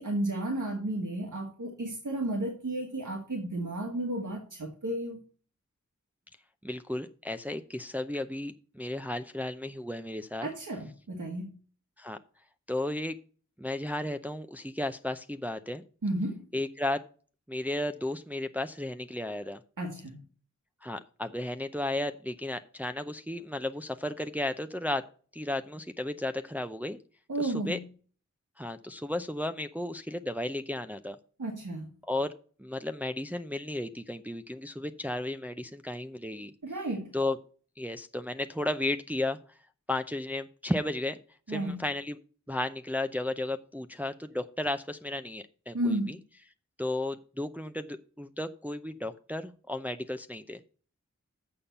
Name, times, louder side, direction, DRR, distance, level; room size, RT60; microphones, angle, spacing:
voice 1, 0.0-5.2 10.4-11.5 16.0-16.4 19.8-20.2 27.3-27.8 31.4-31.9 36.6-37.1 41.5-41.8 45.7-46.2, right 1 dB, 80° right, 1 dB, 1.5 m, -33 dB
voice 2, 6.6-10.5 12.0-12.2 12.7-13.2 13.6-15.8 16.5-17.0 17.5-19.6 20.8-25.0 25.3-27.0 27.4-27.8 28.6-31.2 32.0-32.3 32.6-36.5 37.1-37.4 37.8-39.4 39.9-41.2 41.5-42.2 42.5-46.2 46.8-50.6, left 1 dB, 5° right, 7 dB, 0.5 m, -34 dB
7.0 x 5.7 x 6.7 m, 0.41 s
wide cardioid pair, 40°, 30 cm